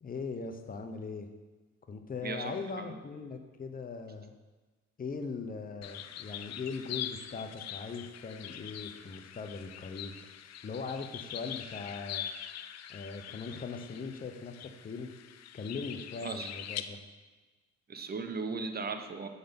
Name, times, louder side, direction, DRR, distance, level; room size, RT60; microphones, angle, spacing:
voice 1, 0.0-1.3 1.9-4.3 5.0-10.3 10.6-12.3 12.9-15.1 15.5-17.0, left 4 dB, 30° left, 6 dB, 0.7 m, -40 dB
voice 2, 2.2-2.9 16.2-16.5 17.9-19.3, right 4 dB, 30° right, 7 dB, 0.7 m, -37 dB
sound 1, 5.8-16.8, left 10 dB, 60° left, 0.4 m, -43 dB
6.7 x 4.1 x 5.2 m, 1.2 s
cardioid pair, 90°, 30 cm